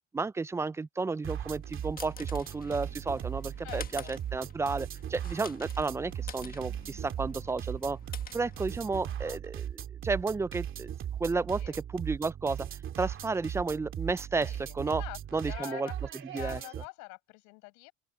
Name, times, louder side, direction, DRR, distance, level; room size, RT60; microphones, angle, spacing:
voice 1, 0.1-8.0 8.3-9.7 10.0-10.9 11.2-12.7 13.0-15.0 15.3-15.9 16.3-16.6, right 4 dB, 10° right, 0.3 m, -32 dB
sound 1, 1.2-16.9, right 10 dB, 40° right, 2.4 m, -38 dB
sound 2, 1.5-9.2, left 8 dB, 30° left, 1.3 m, -49 dB
voice 2, 3.6-4.1 9.1-9.4 11.6-11.8 14.4-15.9 16.3-17.9, left 30 dB, 80° left, 5.8 m, -45 dB
open air
cardioid pair, 120°, 31 cm